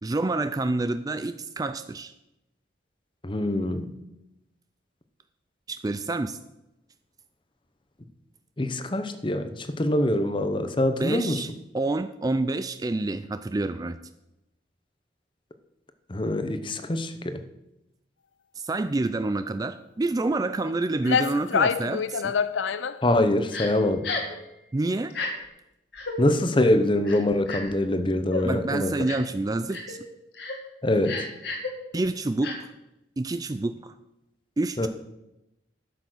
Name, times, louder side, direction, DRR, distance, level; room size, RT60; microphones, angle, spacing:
voice 1, 0.0-2.1 5.7-6.4 11.0-14.0 18.6-22.3 24.7-25.1 28.4-30.0 31.9-32.7 33.2-33.9 34.6-34.9, right 2 dB, 20° right, 11 dB, 0.3 m, -28 dB
voice 2, 3.2-3.9 8.6-11.4 16.1-17.4 23.0-24.0 26.2-28.9 30.8-31.2 34.8-34.9, left 1 dB, 25° left, 9 dB, 0.8 m, -24 dB
sound 1, 20.7-20.8 21.0-23.0, left 6 dB, 80° left, 0.5 m, -25 dB
Crying sobbing, 23.5-23.7 24.0-24.4 25.1-25.3 25.9-26.2 27.0-27.8 28.3-28.5 29.1-29.3 29.7-30.0 30.3-30.6 31.0-31.7 32.4-32.6, left 3 dB, 60° left, 2.0 m, -32 dB
12.0 x 7.1 x 6.2 m, 0.91 s
head